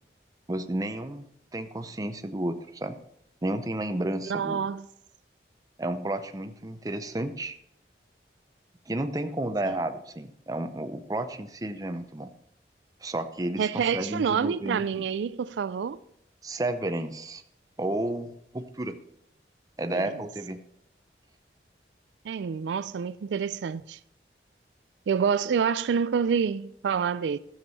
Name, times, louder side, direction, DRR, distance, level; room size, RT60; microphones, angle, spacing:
voice 1, 0.5-1.2 1.5-3.0 3.4-4.6 5.8-7.6 8.9-12.3 13.0-15.0 16.4-17.4 17.8-19.0 19.8-20.6, right 1 dB, 20° right, 0.6 m, -32 dB
voice 2, 4.3-4.9 9.7-9.8 13.6-16.0 19.9-20.1 22.2-24.0 25.1-27.4, right 6 dB, 85° right, 0.4 m, -27 dB
12.5 x 7.4 x 4.1 m
head